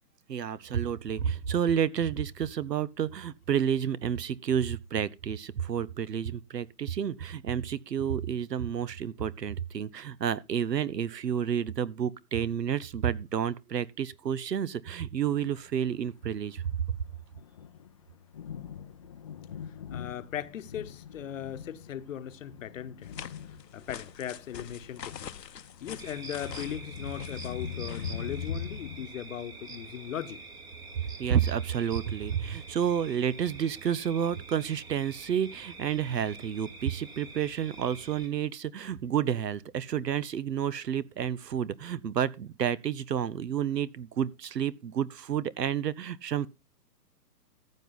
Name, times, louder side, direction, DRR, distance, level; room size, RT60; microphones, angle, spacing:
voice 1, 0.3-16.6 16.9-17.0 31.2-46.5, right 8 dB, 80° right, 1.0 m, -30 dB
Thunder, 15.4-29.1, left 7 dB, 20° left, 0.5 m, -42 dB
voice 2, 19.9-23.3 23.7-25.3 25.6-30.4, left 10 dB, 55° left, 1.1 m, -38 dB
sound 1, 23.0-28.5, left 8 dB, 85° left, 1.0 m, -46 dB
sound 2, 26.0-38.3, right 3 dB, 10° right, 1.0 m, -46 dB
14.5 x 7.5 x 4.0 m
hypercardioid pair, 145°, 48 cm